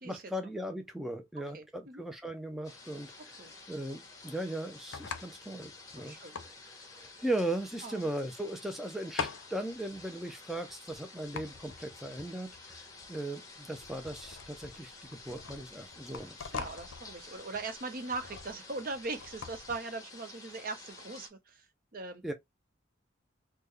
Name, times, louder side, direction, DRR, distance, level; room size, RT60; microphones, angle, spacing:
voice 1, 0.0-16.5 22.2-22.3, right 1 dB, ahead, 0.3 m, -38 dB
voice 2, 1.5-2.0 3.2-3.5 6.0-6.3 7.8-8.1 16.5-21.7 21.9-22.2, right 3 dB, 50° right, 0.7 m, -40 dB
sound 1, 2.0-19.8, left 5 dB, 90° left, 0.5 m, -45 dB
sound 2, 2.6-21.3, left 3 dB, 20° left, 1.1 m, -51 dB
3.5 x 2.1 x 3.1 m
head